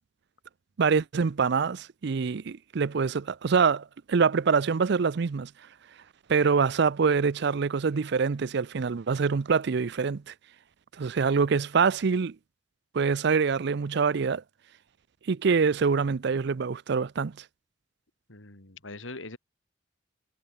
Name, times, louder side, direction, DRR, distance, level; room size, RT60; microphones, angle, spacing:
voice 1, 0.8-5.5 6.3-10.3 11.0-12.4 12.9-14.4 15.3-17.4, right 5 dB, 60° right, 0.5 m, -25 dB
voice 2, 18.3-19.4, left 2 dB, 90° left, 3.5 m, -42 dB
head